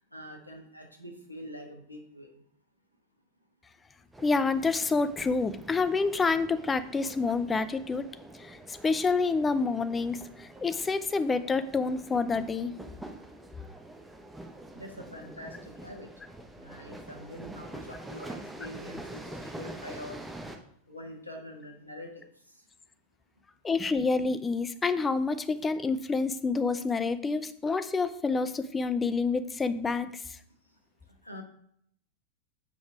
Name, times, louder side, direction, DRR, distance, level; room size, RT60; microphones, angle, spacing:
voice 1, 0.0-2.4 14.7-16.1 16.6-20.2 20.9-22.7 31.1-31.4, equal, 85° left, 2 dB, 1.4 m, -45 dB
sound 1, 4.1-20.6, right 1 dB, 5° right, 0.9 m, -46 dB
voice 2, 4.2-8.1 8.3-12.7 23.6-30.4, left 4 dB, 15° left, 12 dB, 0.5 m, -28 dB
6.9 x 5.3 x 4.6 m, 0.68 s
figure-of-eight pair, 90°, 0 cm